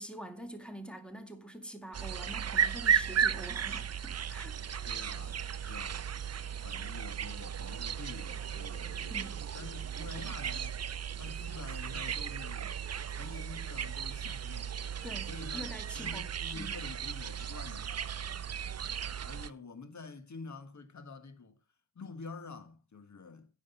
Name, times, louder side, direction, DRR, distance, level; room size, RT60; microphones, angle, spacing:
voice 1, 0.0-4.6 5.6-5.7 9.1-9.4 15.0-16.3 16.6-16.7, equal, ahead, 2.1 m, -45 dB
sound 1, 1.9-19.5, right 8 dB, 40° right, 0.6 m, -35 dB
sound 2, 3.9-12.1, right 11 dB, 65° right, 1.8 m, -63 dB
voice 2, 4.9-6.1 6.6-10.8 11.1-12.7 13.0-14.8 15.3-15.7 16.0-18.0 19.2-21.6 22.0-23.5, left 4 dB, 45° left, 1.6 m, -48 dB
10.0 x 6.3 x 7.0 m
wide cardioid pair, 105°, 40 cm